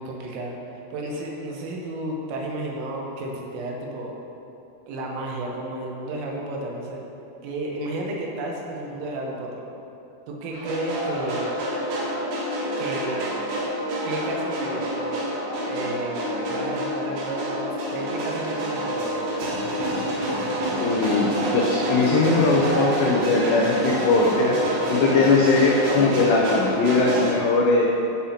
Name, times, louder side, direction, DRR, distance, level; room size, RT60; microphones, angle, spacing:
voice 1, 0.0-4.2 4.9-7.0 7.4-9.5 10.3-11.5 12.8-13.2 14.1-15.2 15.6-19.3, right 1 dB, 90° right, -1 dB, 3.6 m, -32 dB
sound 1, 10.5-27.3, right 1 dB, 70° right, 3.5 m, -29 dB
sound 2, 11.2-26.6, left 1 dB, 50° right, 2.3 m, -33 dB
voice 2, 20.8-24.6 24.9-27.9, left 3 dB, 80° left, -3 dB, 2.5 m, -20 dB
16.0 x 5.8 x 2.8 m, 2.9 s
omnidirectional pair, 5.7 m